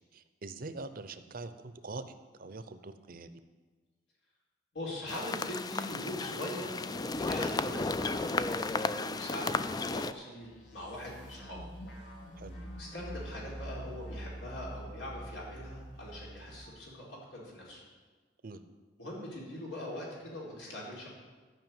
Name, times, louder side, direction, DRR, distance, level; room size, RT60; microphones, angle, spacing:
voice 1, 0.1-3.3 12.4-12.6 18.4-18.6, right 3 dB, 50° right, 11 dB, 0.7 m, -44 dB
voice 2, 4.7-11.6 12.8-17.8 19.0-21.1, left 1 dB, 90° left, -4 dB, 4.2 m, -42 dB
sound 1, 5.1-10.1, left 3 dB, 20° left, 0.3 m, -33 dB
sound 2, 10.4-16.7, equal, 70° left, 2.0 m, -45 dB
12.0 x 5.8 x 9.1 m, 1.4 s
head